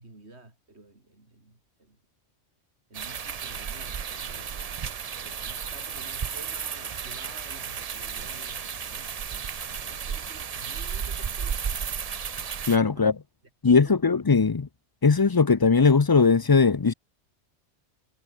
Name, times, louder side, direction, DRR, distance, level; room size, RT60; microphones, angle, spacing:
voice 1, 0.0-2.0 2.9-4.7 5.2-11.9 12.9-13.1 13.6-14.2, right 2 dB, 70° right, 4.4 m, -51 dB
sound 1, 2.9-12.8, right 7 dB, 40° right, 0.6 m, -33 dB
voice 2, 12.7-13.2 13.6-14.7 15.0-16.9, left 4 dB, 30° left, 0.4 m, -19 dB
omnidirectional pair, 1.2 m